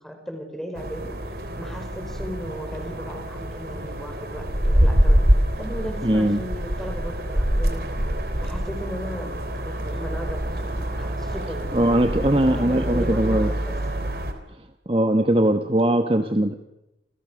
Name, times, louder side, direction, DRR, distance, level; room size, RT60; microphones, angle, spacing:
voice 1, 0.0-5.2 5.6-8.0 8.4-9.4 9.6-12.0 12.4-13.8, equal, ahead, 4 dB, 5.4 m, -36 dB
sound 1, 0.8-14.3, equal, 60° right, 3.6 m, -25 dB
voice 2, 6.0-6.4 11.7-13.5 14.9-16.5, right 1 dB, 30° right, 6 dB, 1.4 m, -20 dB
29.5 x 28.0 x 6.5 m, 0.93 s
head